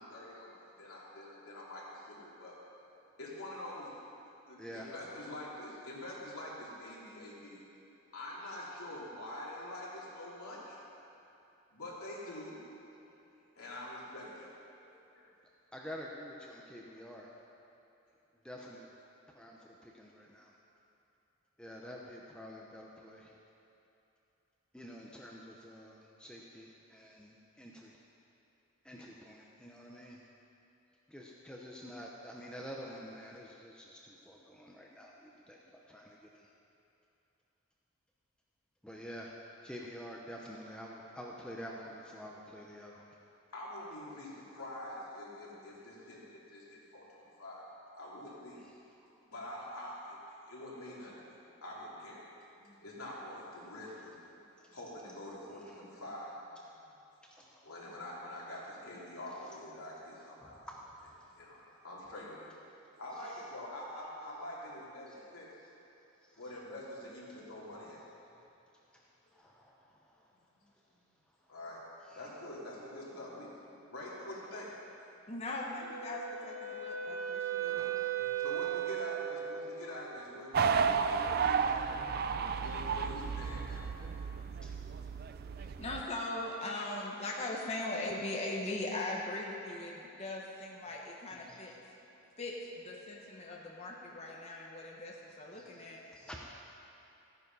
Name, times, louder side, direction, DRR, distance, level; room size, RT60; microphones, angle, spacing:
voice 1, 0.0-2.6 3.1-3.9 4.4-7.6 8.1-10.8 11.7-12.6 13.5-14.5 14.8-15.3 16.9-17.1 43.5-47.6 47.9-48.6 49.3-50.2 50.5-52.2 52.5-57.0 57.6-60.7 61.3-62.5 63.0-65.6 66.4-68.0 70.5-70.6 71.5-71.8 72.1-73.6 73.9-74.7 77.6-81.8 82.5-84.2, left 1 dB, 80° left, -6 dB, 3.2 m, -46 dB
voice 2, 4.6-4.9 15.7-17.3 18.4-18.9 19.3-20.5 21.6-23.3 24.7-28.0 28.8-30.2 31.1-36.4 38.8-39.3 39.6-43.1 55.7-55.8 57.3-57.7 59.3-59.4 60.4-60.8 61.2-61.3 65.1-65.2 69.3-70.0 77.1-77.2 77.7-78.4 83.2-83.4 84.6-84.8 90.8-90.9 91.3-91.6 95.5-95.8 96.1-96.5, equal, 5° left, -2 dB, 0.7 m, -48 dB
voice 3, 75.3-77.9 85.6-91.7 92.4-96.0, left 2 dB, 30° left, -2 dB, 1.1 m, -40 dB
Wind instrument woodwind instrument, 75.8-79.8, right 10 dB, 75° right, 1.1 m, -36 dB
Wind instrument woodwind instrument 2, 77.1-81.6, right 5 dB, 25° right, 1.0 m, -53 dB
sound 1, 80.5-86.0, right 6 dB, 45° right, 0.4 m, -32 dB
14.0 x 9.4 x 5.5 m, 2.8 s
head